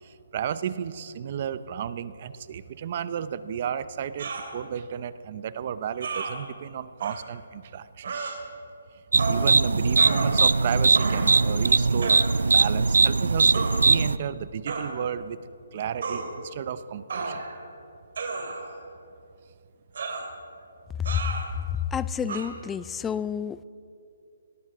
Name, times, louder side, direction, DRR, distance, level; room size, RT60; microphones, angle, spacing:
voice 1, 0.0-8.1 9.2-12.2 12.5-15.4 15.7-17.4, right 8 dB, 40° right, 14 dB, 0.6 m, -33 dB
sound 1, 4.2-4.5 6.0-6.3 7.0-7.2 8.0-8.4 9.2-9.5 10.0-10.6 10.9-11.4 12.0-12.3 13.5-13.7 14.7-14.9 16.0-16.3 17.1-17.6 18.2-18.8 20.0-20.3 21.1-21.5 22.3-22.4, right 4 dB, 60° right, 2.9 m, -32 dB
sound 2, 9.1-14.2, right 3 dB, 90° right, 0.4 m, -20 dB
voice 2, 21.7-23.6, left 8 dB, 10° left, 17 dB, 0.3 m, -29 dB
18.0 x 12.5 x 6.1 m, 2.6 s
hypercardioid pair, 160°, 0 cm